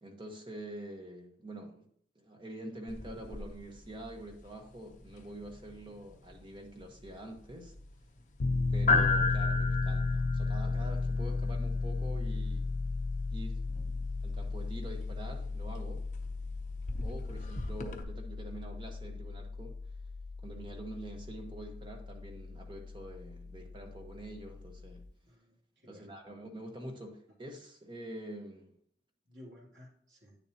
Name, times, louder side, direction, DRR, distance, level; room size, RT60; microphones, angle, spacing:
voice 1, 0.0-1.9 2.1-7.7 8.7-12.8 13.3-13.7 14.2-16.0 17.0-19.8 20.4-25.0 25.9-28.7, right 1 dB, 30° right, 3 dB, 1.2 m, -46 dB
sound 1, 2.9-18.0, left 4 dB, 45° left, 0.8 m, -37 dB
Piano, 8.4-25.1, left 3 dB, 85° left, 0.5 m, -35 dB
voice 2, 25.2-26.1 29.3-30.4, left 1 dB, 80° right, -6 dB, 3.2 m, -55 dB
9.2 x 7.1 x 2.9 m, 0.65 s
head